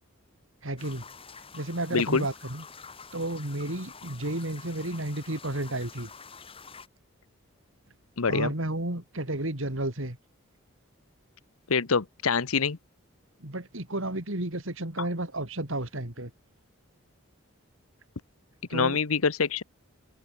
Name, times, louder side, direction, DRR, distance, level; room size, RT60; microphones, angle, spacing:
voice 1, 0.6-1.0 1.5-2.6 3.1-6.1 8.3-10.2 13.4-16.3 18.7-19.0, right 1 dB, 70° right, 3.5 m, -32 dB
sound 1, 0.8-6.9, left 5 dB, 25° left, 5.2 m, -47 dB
voice 2, 1.9-2.3 8.2-8.5 11.7-12.8 18.7-19.6, left 5 dB, 90° left, 1.0 m, -25 dB
head